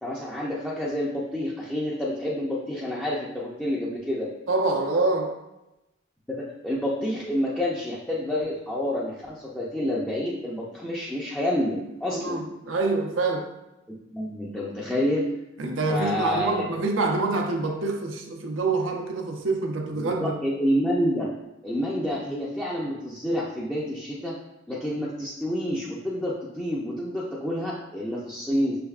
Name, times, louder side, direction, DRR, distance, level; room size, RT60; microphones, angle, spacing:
voice 1, 0.0-4.3 6.3-12.4 14.1-15.3 15.9-16.6 20.0-21.3 21.6-24.4 24.7-28.8, equal, 5° left, -7 dB, 0.5 m, -28 dB
voice 2, 4.5-5.3 12.1-13.5 15.6-20.4, right 3 dB, 85° right, 2 dB, 0.6 m, -26 dB
6.0 x 3.3 x 2.4 m, 0.95 s
head